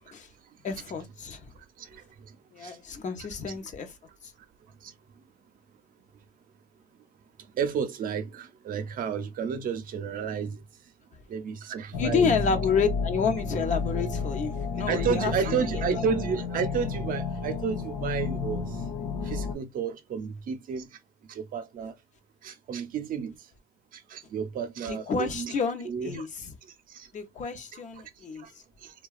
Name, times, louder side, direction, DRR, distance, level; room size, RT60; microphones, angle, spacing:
voice 1, 0.6-1.5 2.5-3.9 12.0-15.6 15.9-16.0 24.9-26.3 27.1-28.5, left 5 dB, 45° left, 0.7 m, -29 dB
voice 2, 7.6-10.6 11.3-12.3 14.9-18.6 19.3-20.9 21.3-21.9 22.4-23.3 24.1-25.5 25.8-26.2 26.9-27.1, right 6 dB, 55° right, 0.6 m, -31 dB
sound 1, 11.9-19.5, left 4 dB, 90° left, 0.7 m, -31 dB
2.8 x 2.2 x 2.3 m
cardioid pair, 110°, 17 cm